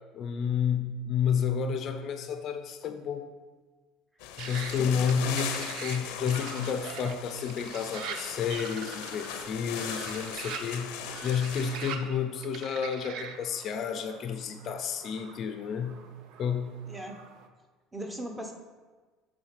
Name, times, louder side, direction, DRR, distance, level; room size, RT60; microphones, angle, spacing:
voice 1, 0.1-3.3 4.4-16.0 16.4-16.8, left 7 dB, 40° left, 8 dB, 0.5 m, -31 dB
sound 1, 4.2-12.0, left 8 dB, 85° left, 0.7 m, -39 dB
sound 2, 4.4-17.5, right 6 dB, 65° right, 0.6 m, -43 dB
voice 2, 17.9-18.5, right 1 dB, 10° right, 3 dB, 0.8 m, -38 dB
7.7 x 3.7 x 5.8 m, 1.3 s
cardioid pair, 145°, 0 cm